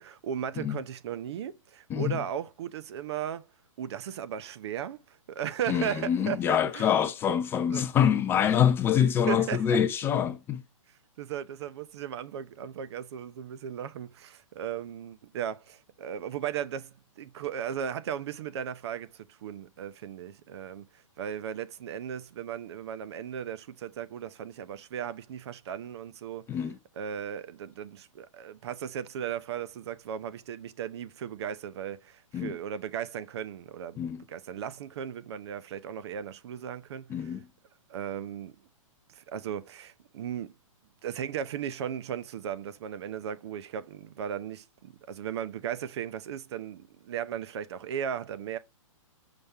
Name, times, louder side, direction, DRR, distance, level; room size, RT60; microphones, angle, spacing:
voice 1, 0.0-3.5 3.8-6.9 7.7-7.8 9.1-9.8 11.2-26.5 27.0-34.0 34.3-37.3 37.9-38.6 39.1-40.5 41.0-48.6, right 9 dB, 50° right, 0.7 m, -36 dB
voice 2, 5.7-10.6 26.5-26.8 32.3-32.6 34.0-34.2 37.1-37.5, left 9 dB, 15° left, 0.4 m, -25 dB
5.7 x 5.2 x 3.4 m
hypercardioid pair, 140°, 17 cm